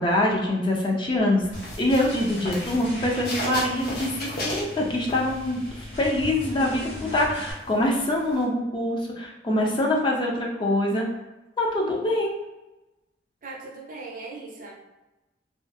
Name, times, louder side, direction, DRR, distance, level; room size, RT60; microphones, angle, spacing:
voice 1, 0.0-1.4 1.8-11.1 11.6-12.4, left 1 dB, 25° left, -1 dB, 0.4 m, -24 dB
sound 1, 1.5-7.5, left 1 dB, 75° left, 1.0 m, -39 dB
sound 2, 1.5-5.7 6.1-8.4, left 1 dB, 55° left, 0.7 m, -35 dB
voice 2, 6.6-7.2 13.4-14.7, right 2 dB, 50° right, -2 dB, 0.5 m, -39 dB
2.5 x 2.2 x 2.5 m, 1.0 s
head